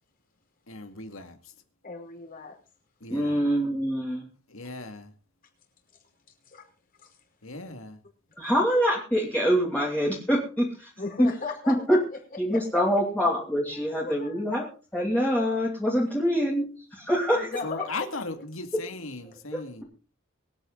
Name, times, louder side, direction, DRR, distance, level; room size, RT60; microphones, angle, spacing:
voice 1, 0.7-1.5 3.0-3.4 4.5-5.1 7.4-8.0 17.6-19.8, left 3 dB, 70° left, 7 dB, 2.3 m, -38 dB
voice 2, 1.8-2.6 6.5-6.7 7.0-7.2 11.0-12.8 13.7-14.6 17.3-18.0, left 4 dB, 45° left, 0 dB, 5.2 m, -37 dB
voice 3, 3.1-4.2 8.4-10.9 11.7-12.0 12.4-14.7 14.9-16.7 16.9-17.5 19.5-19.8, equal, 10° left, -4 dB, 2.8 m, -25 dB
24.0 x 9.1 x 4.0 m, 0.35 s
head